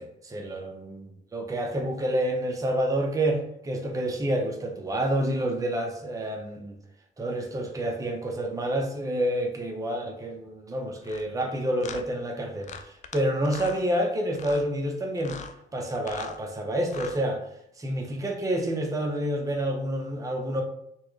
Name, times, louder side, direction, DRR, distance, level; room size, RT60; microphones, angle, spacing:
voice 1, 0.0-6.8 7.2-15.4 15.7-17.5 17.8-20.6, right 1 dB, 15° right, 2 dB, 0.7 m, -28 dB
sound 1, 11.0-11.2 11.8-12.0 12.6-13.2 13.4-13.8 14.3-14.7 15.2-15.5 15.9-16.4 16.8-17.2, left 6 dB, 40° left, 0.4 m, -40 dB
4.2 x 2.2 x 3.1 m, 0.76 s
cardioid pair, 90°, 20 cm